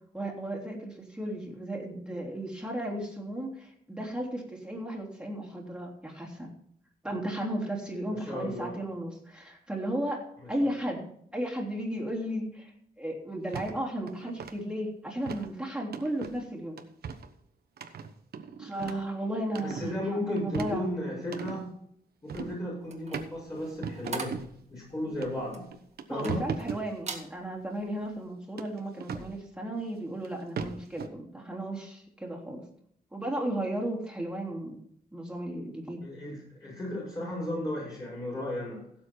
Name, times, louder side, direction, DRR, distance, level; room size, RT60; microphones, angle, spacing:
voice 1, 0.1-6.5 7.0-12.7 13.0-16.8 18.6-20.9 26.1-32.6 33.1-34.8 35.1-36.0, right 1 dB, 5° right, -2 dB, 3.4 m, -34 dB
voice 2, 8.1-8.8 10.4-10.7 19.6-21.7 22.2-24.3 24.7-25.7 26.1-26.5 36.0-38.8, left 1 dB, 25° left, -7 dB, 6.2 m, -35 dB
sound 1, 13.5-13.7 14.1-14.5 15.3-15.5 15.9-16.4 16.8-17.3 17.8-19.1 19.5-20.0 20.4-21.6 22.3-22.6 23.1-23.3 23.8-24.5 25.2-25.3 25.7-26.8 28.6-29.3 30.2-30.3 30.6-31.1, right 6 dB, 75° right, 1.2 m, -37 dB
sound 2, 22.8-26.7 27.0-27.3 27.8-28.0, right 4 dB, 45° right, 2.0 m, -41 dB
16.5 x 7.5 x 4.5 m, 0.67 s
wide cardioid pair, 140°, 16 cm